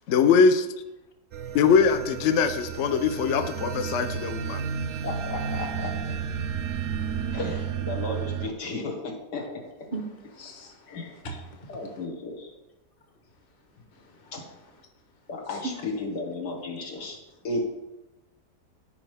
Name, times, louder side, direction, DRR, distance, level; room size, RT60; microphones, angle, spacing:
voice 1, 0.1-0.7 1.5-4.6, left 5 dB, 65° left, 8 dB, 0.7 m, -22 dB
sound 1, 1.3-8.5, right 7 dB, 65° right, 0.8 m, -32 dB
voice 2, 5.0-6.5 7.3-9.9 10.9-11.1 11.7-12.5 14.3-14.4 15.3-17.2 17.4-17.6, left 2 dB, 90° left, -1 dB, 2.3 m, -34 dB
voice 3, 10.3-10.7 11.2-11.4 15.6-15.7, right 3 dB, 35° left, 3 dB, 1.3 m, -35 dB
14.0 x 5.1 x 3.4 m, 0.99 s
omnidirectional pair, 1.8 m